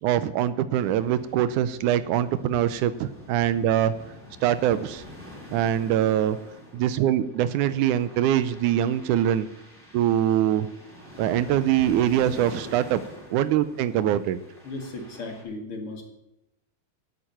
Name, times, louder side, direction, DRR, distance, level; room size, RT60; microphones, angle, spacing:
voice 1, 0.0-3.9 4.4-5.0 5.5-6.4 6.7-9.5 9.9-10.7 11.2-13.0 13.3-14.4, right 11 dB, 85° right, 14 dB, 2.1 m, -23 dB
sound 1, 0.8-15.4, left 1 dB, 5° right, 3.6 m, -45 dB
voice 2, 14.6-16.0, left 2 dB, 45° left, 3 dB, 2.8 m, -36 dB
10.5 x 9.0 x 9.0 m, 0.86 s
omnidirectional pair, 3.6 m